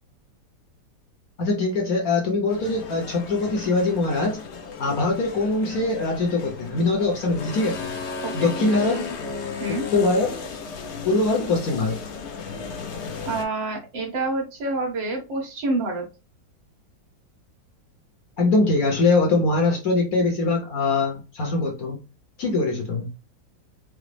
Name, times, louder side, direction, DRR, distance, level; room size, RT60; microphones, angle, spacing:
voice 1, 1.4-4.4 4.8-7.9 8.3-9.0 9.9-10.4 11.0-12.0 18.4-22.0 22.4-23.1, left 3 dB, 55° left, 1 dB, 1.1 m, -22 dB
sound 1, 2.5-13.4, left 5 dB, 90° left, 0.6 m, -35 dB
voice 2, 8.2-9.0 9.6-9.9 13.3-16.1, right 2 dB, 75° right, 1 dB, 1.8 m, -28 dB
4.9 x 2.0 x 3.2 m, 0.30 s
omnidirectional pair, 2.1 m